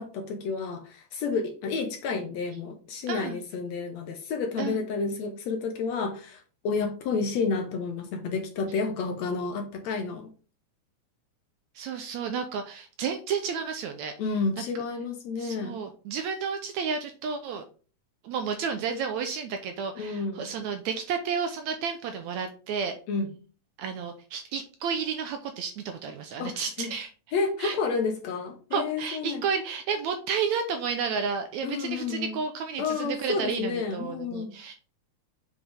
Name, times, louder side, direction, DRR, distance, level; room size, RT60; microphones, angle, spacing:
voice 1, 0.0-10.3 14.2-15.8 20.0-20.5 23.1-23.3 26.4-26.9 27.3-29.4 31.6-32.4 32.8-34.6, left 4 dB, 70° left, 5 dB, 1.9 m, -30 dB
voice 2, 3.1-3.4 4.6-4.8 11.8-14.1 15.4-17.6 18.2-23.0 23.8-27.1 27.6-27.8 28.7-34.7, right 6 dB, 75° right, 6 dB, 1.8 m, -31 dB
7.5 x 4.9 x 3.4 m, 0.37 s
omnidirectional pair, 3.7 m